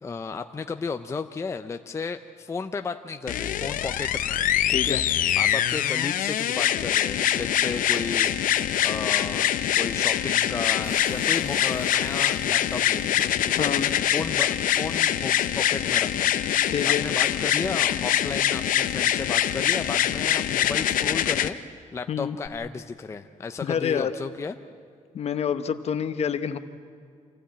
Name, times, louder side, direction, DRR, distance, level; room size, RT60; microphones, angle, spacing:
voice 1, 0.0-5.0 5.4-13.7 14.1-21.6 21.9-24.6, left 4 dB, 20° left, 8 dB, 0.5 m, -34 dB
sound 1, 3.3-21.5 22.5-22.6, left 11 dB, 90° left, 0.8 m, -24 dB
voice 2, 4.7-5.0 13.5-13.9 16.7-17.1 22.1-22.4 23.6-24.1 25.1-26.6, left 8 dB, 50° left, 11 dB, 0.9 m, -27 dB
Car, 10.8-14.9 15.9-16.0 16.5-19.8, right 1 dB, 45° right, 4.7 m, -48 dB
27.0 x 16.0 x 8.7 m, 2.3 s
wide cardioid pair, 175°, 14 cm